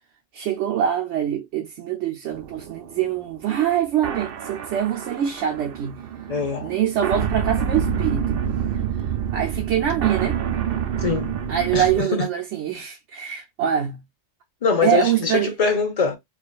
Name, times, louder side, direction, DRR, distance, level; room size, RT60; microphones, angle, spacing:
voice 1, 0.3-6.0 6.6-8.4 8.7-8.8 9.3-10.4 11.5-14.0 14.8-15.5, right 10 dB, 80° right, 1.0 m, -24 dB
sound 1, 2.3-12.0, right 7 dB, 65° right, 0.7 m, -28 dB
voice 2, 6.3-6.7 11.0-11.3 11.7-12.3 14.6-16.2, left 5 dB, 35° left, 1.0 m, -23 dB
4.8 x 2.5 x 2.4 m
omnidirectional pair, 1.2 m